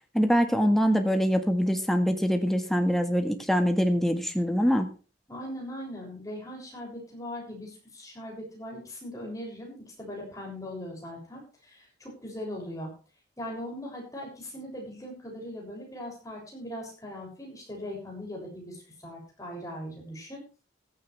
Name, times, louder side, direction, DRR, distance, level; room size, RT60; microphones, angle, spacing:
voice 1, 0.1-4.9, equal, ahead, 5 dB, 1.6 m, -24 dB
voice 2, 5.3-12.9 13.4-20.4, left 1 dB, 15° left, -1 dB, 6.9 m, -40 dB
15.5 x 13.5 x 3.4 m, 0.35 s
head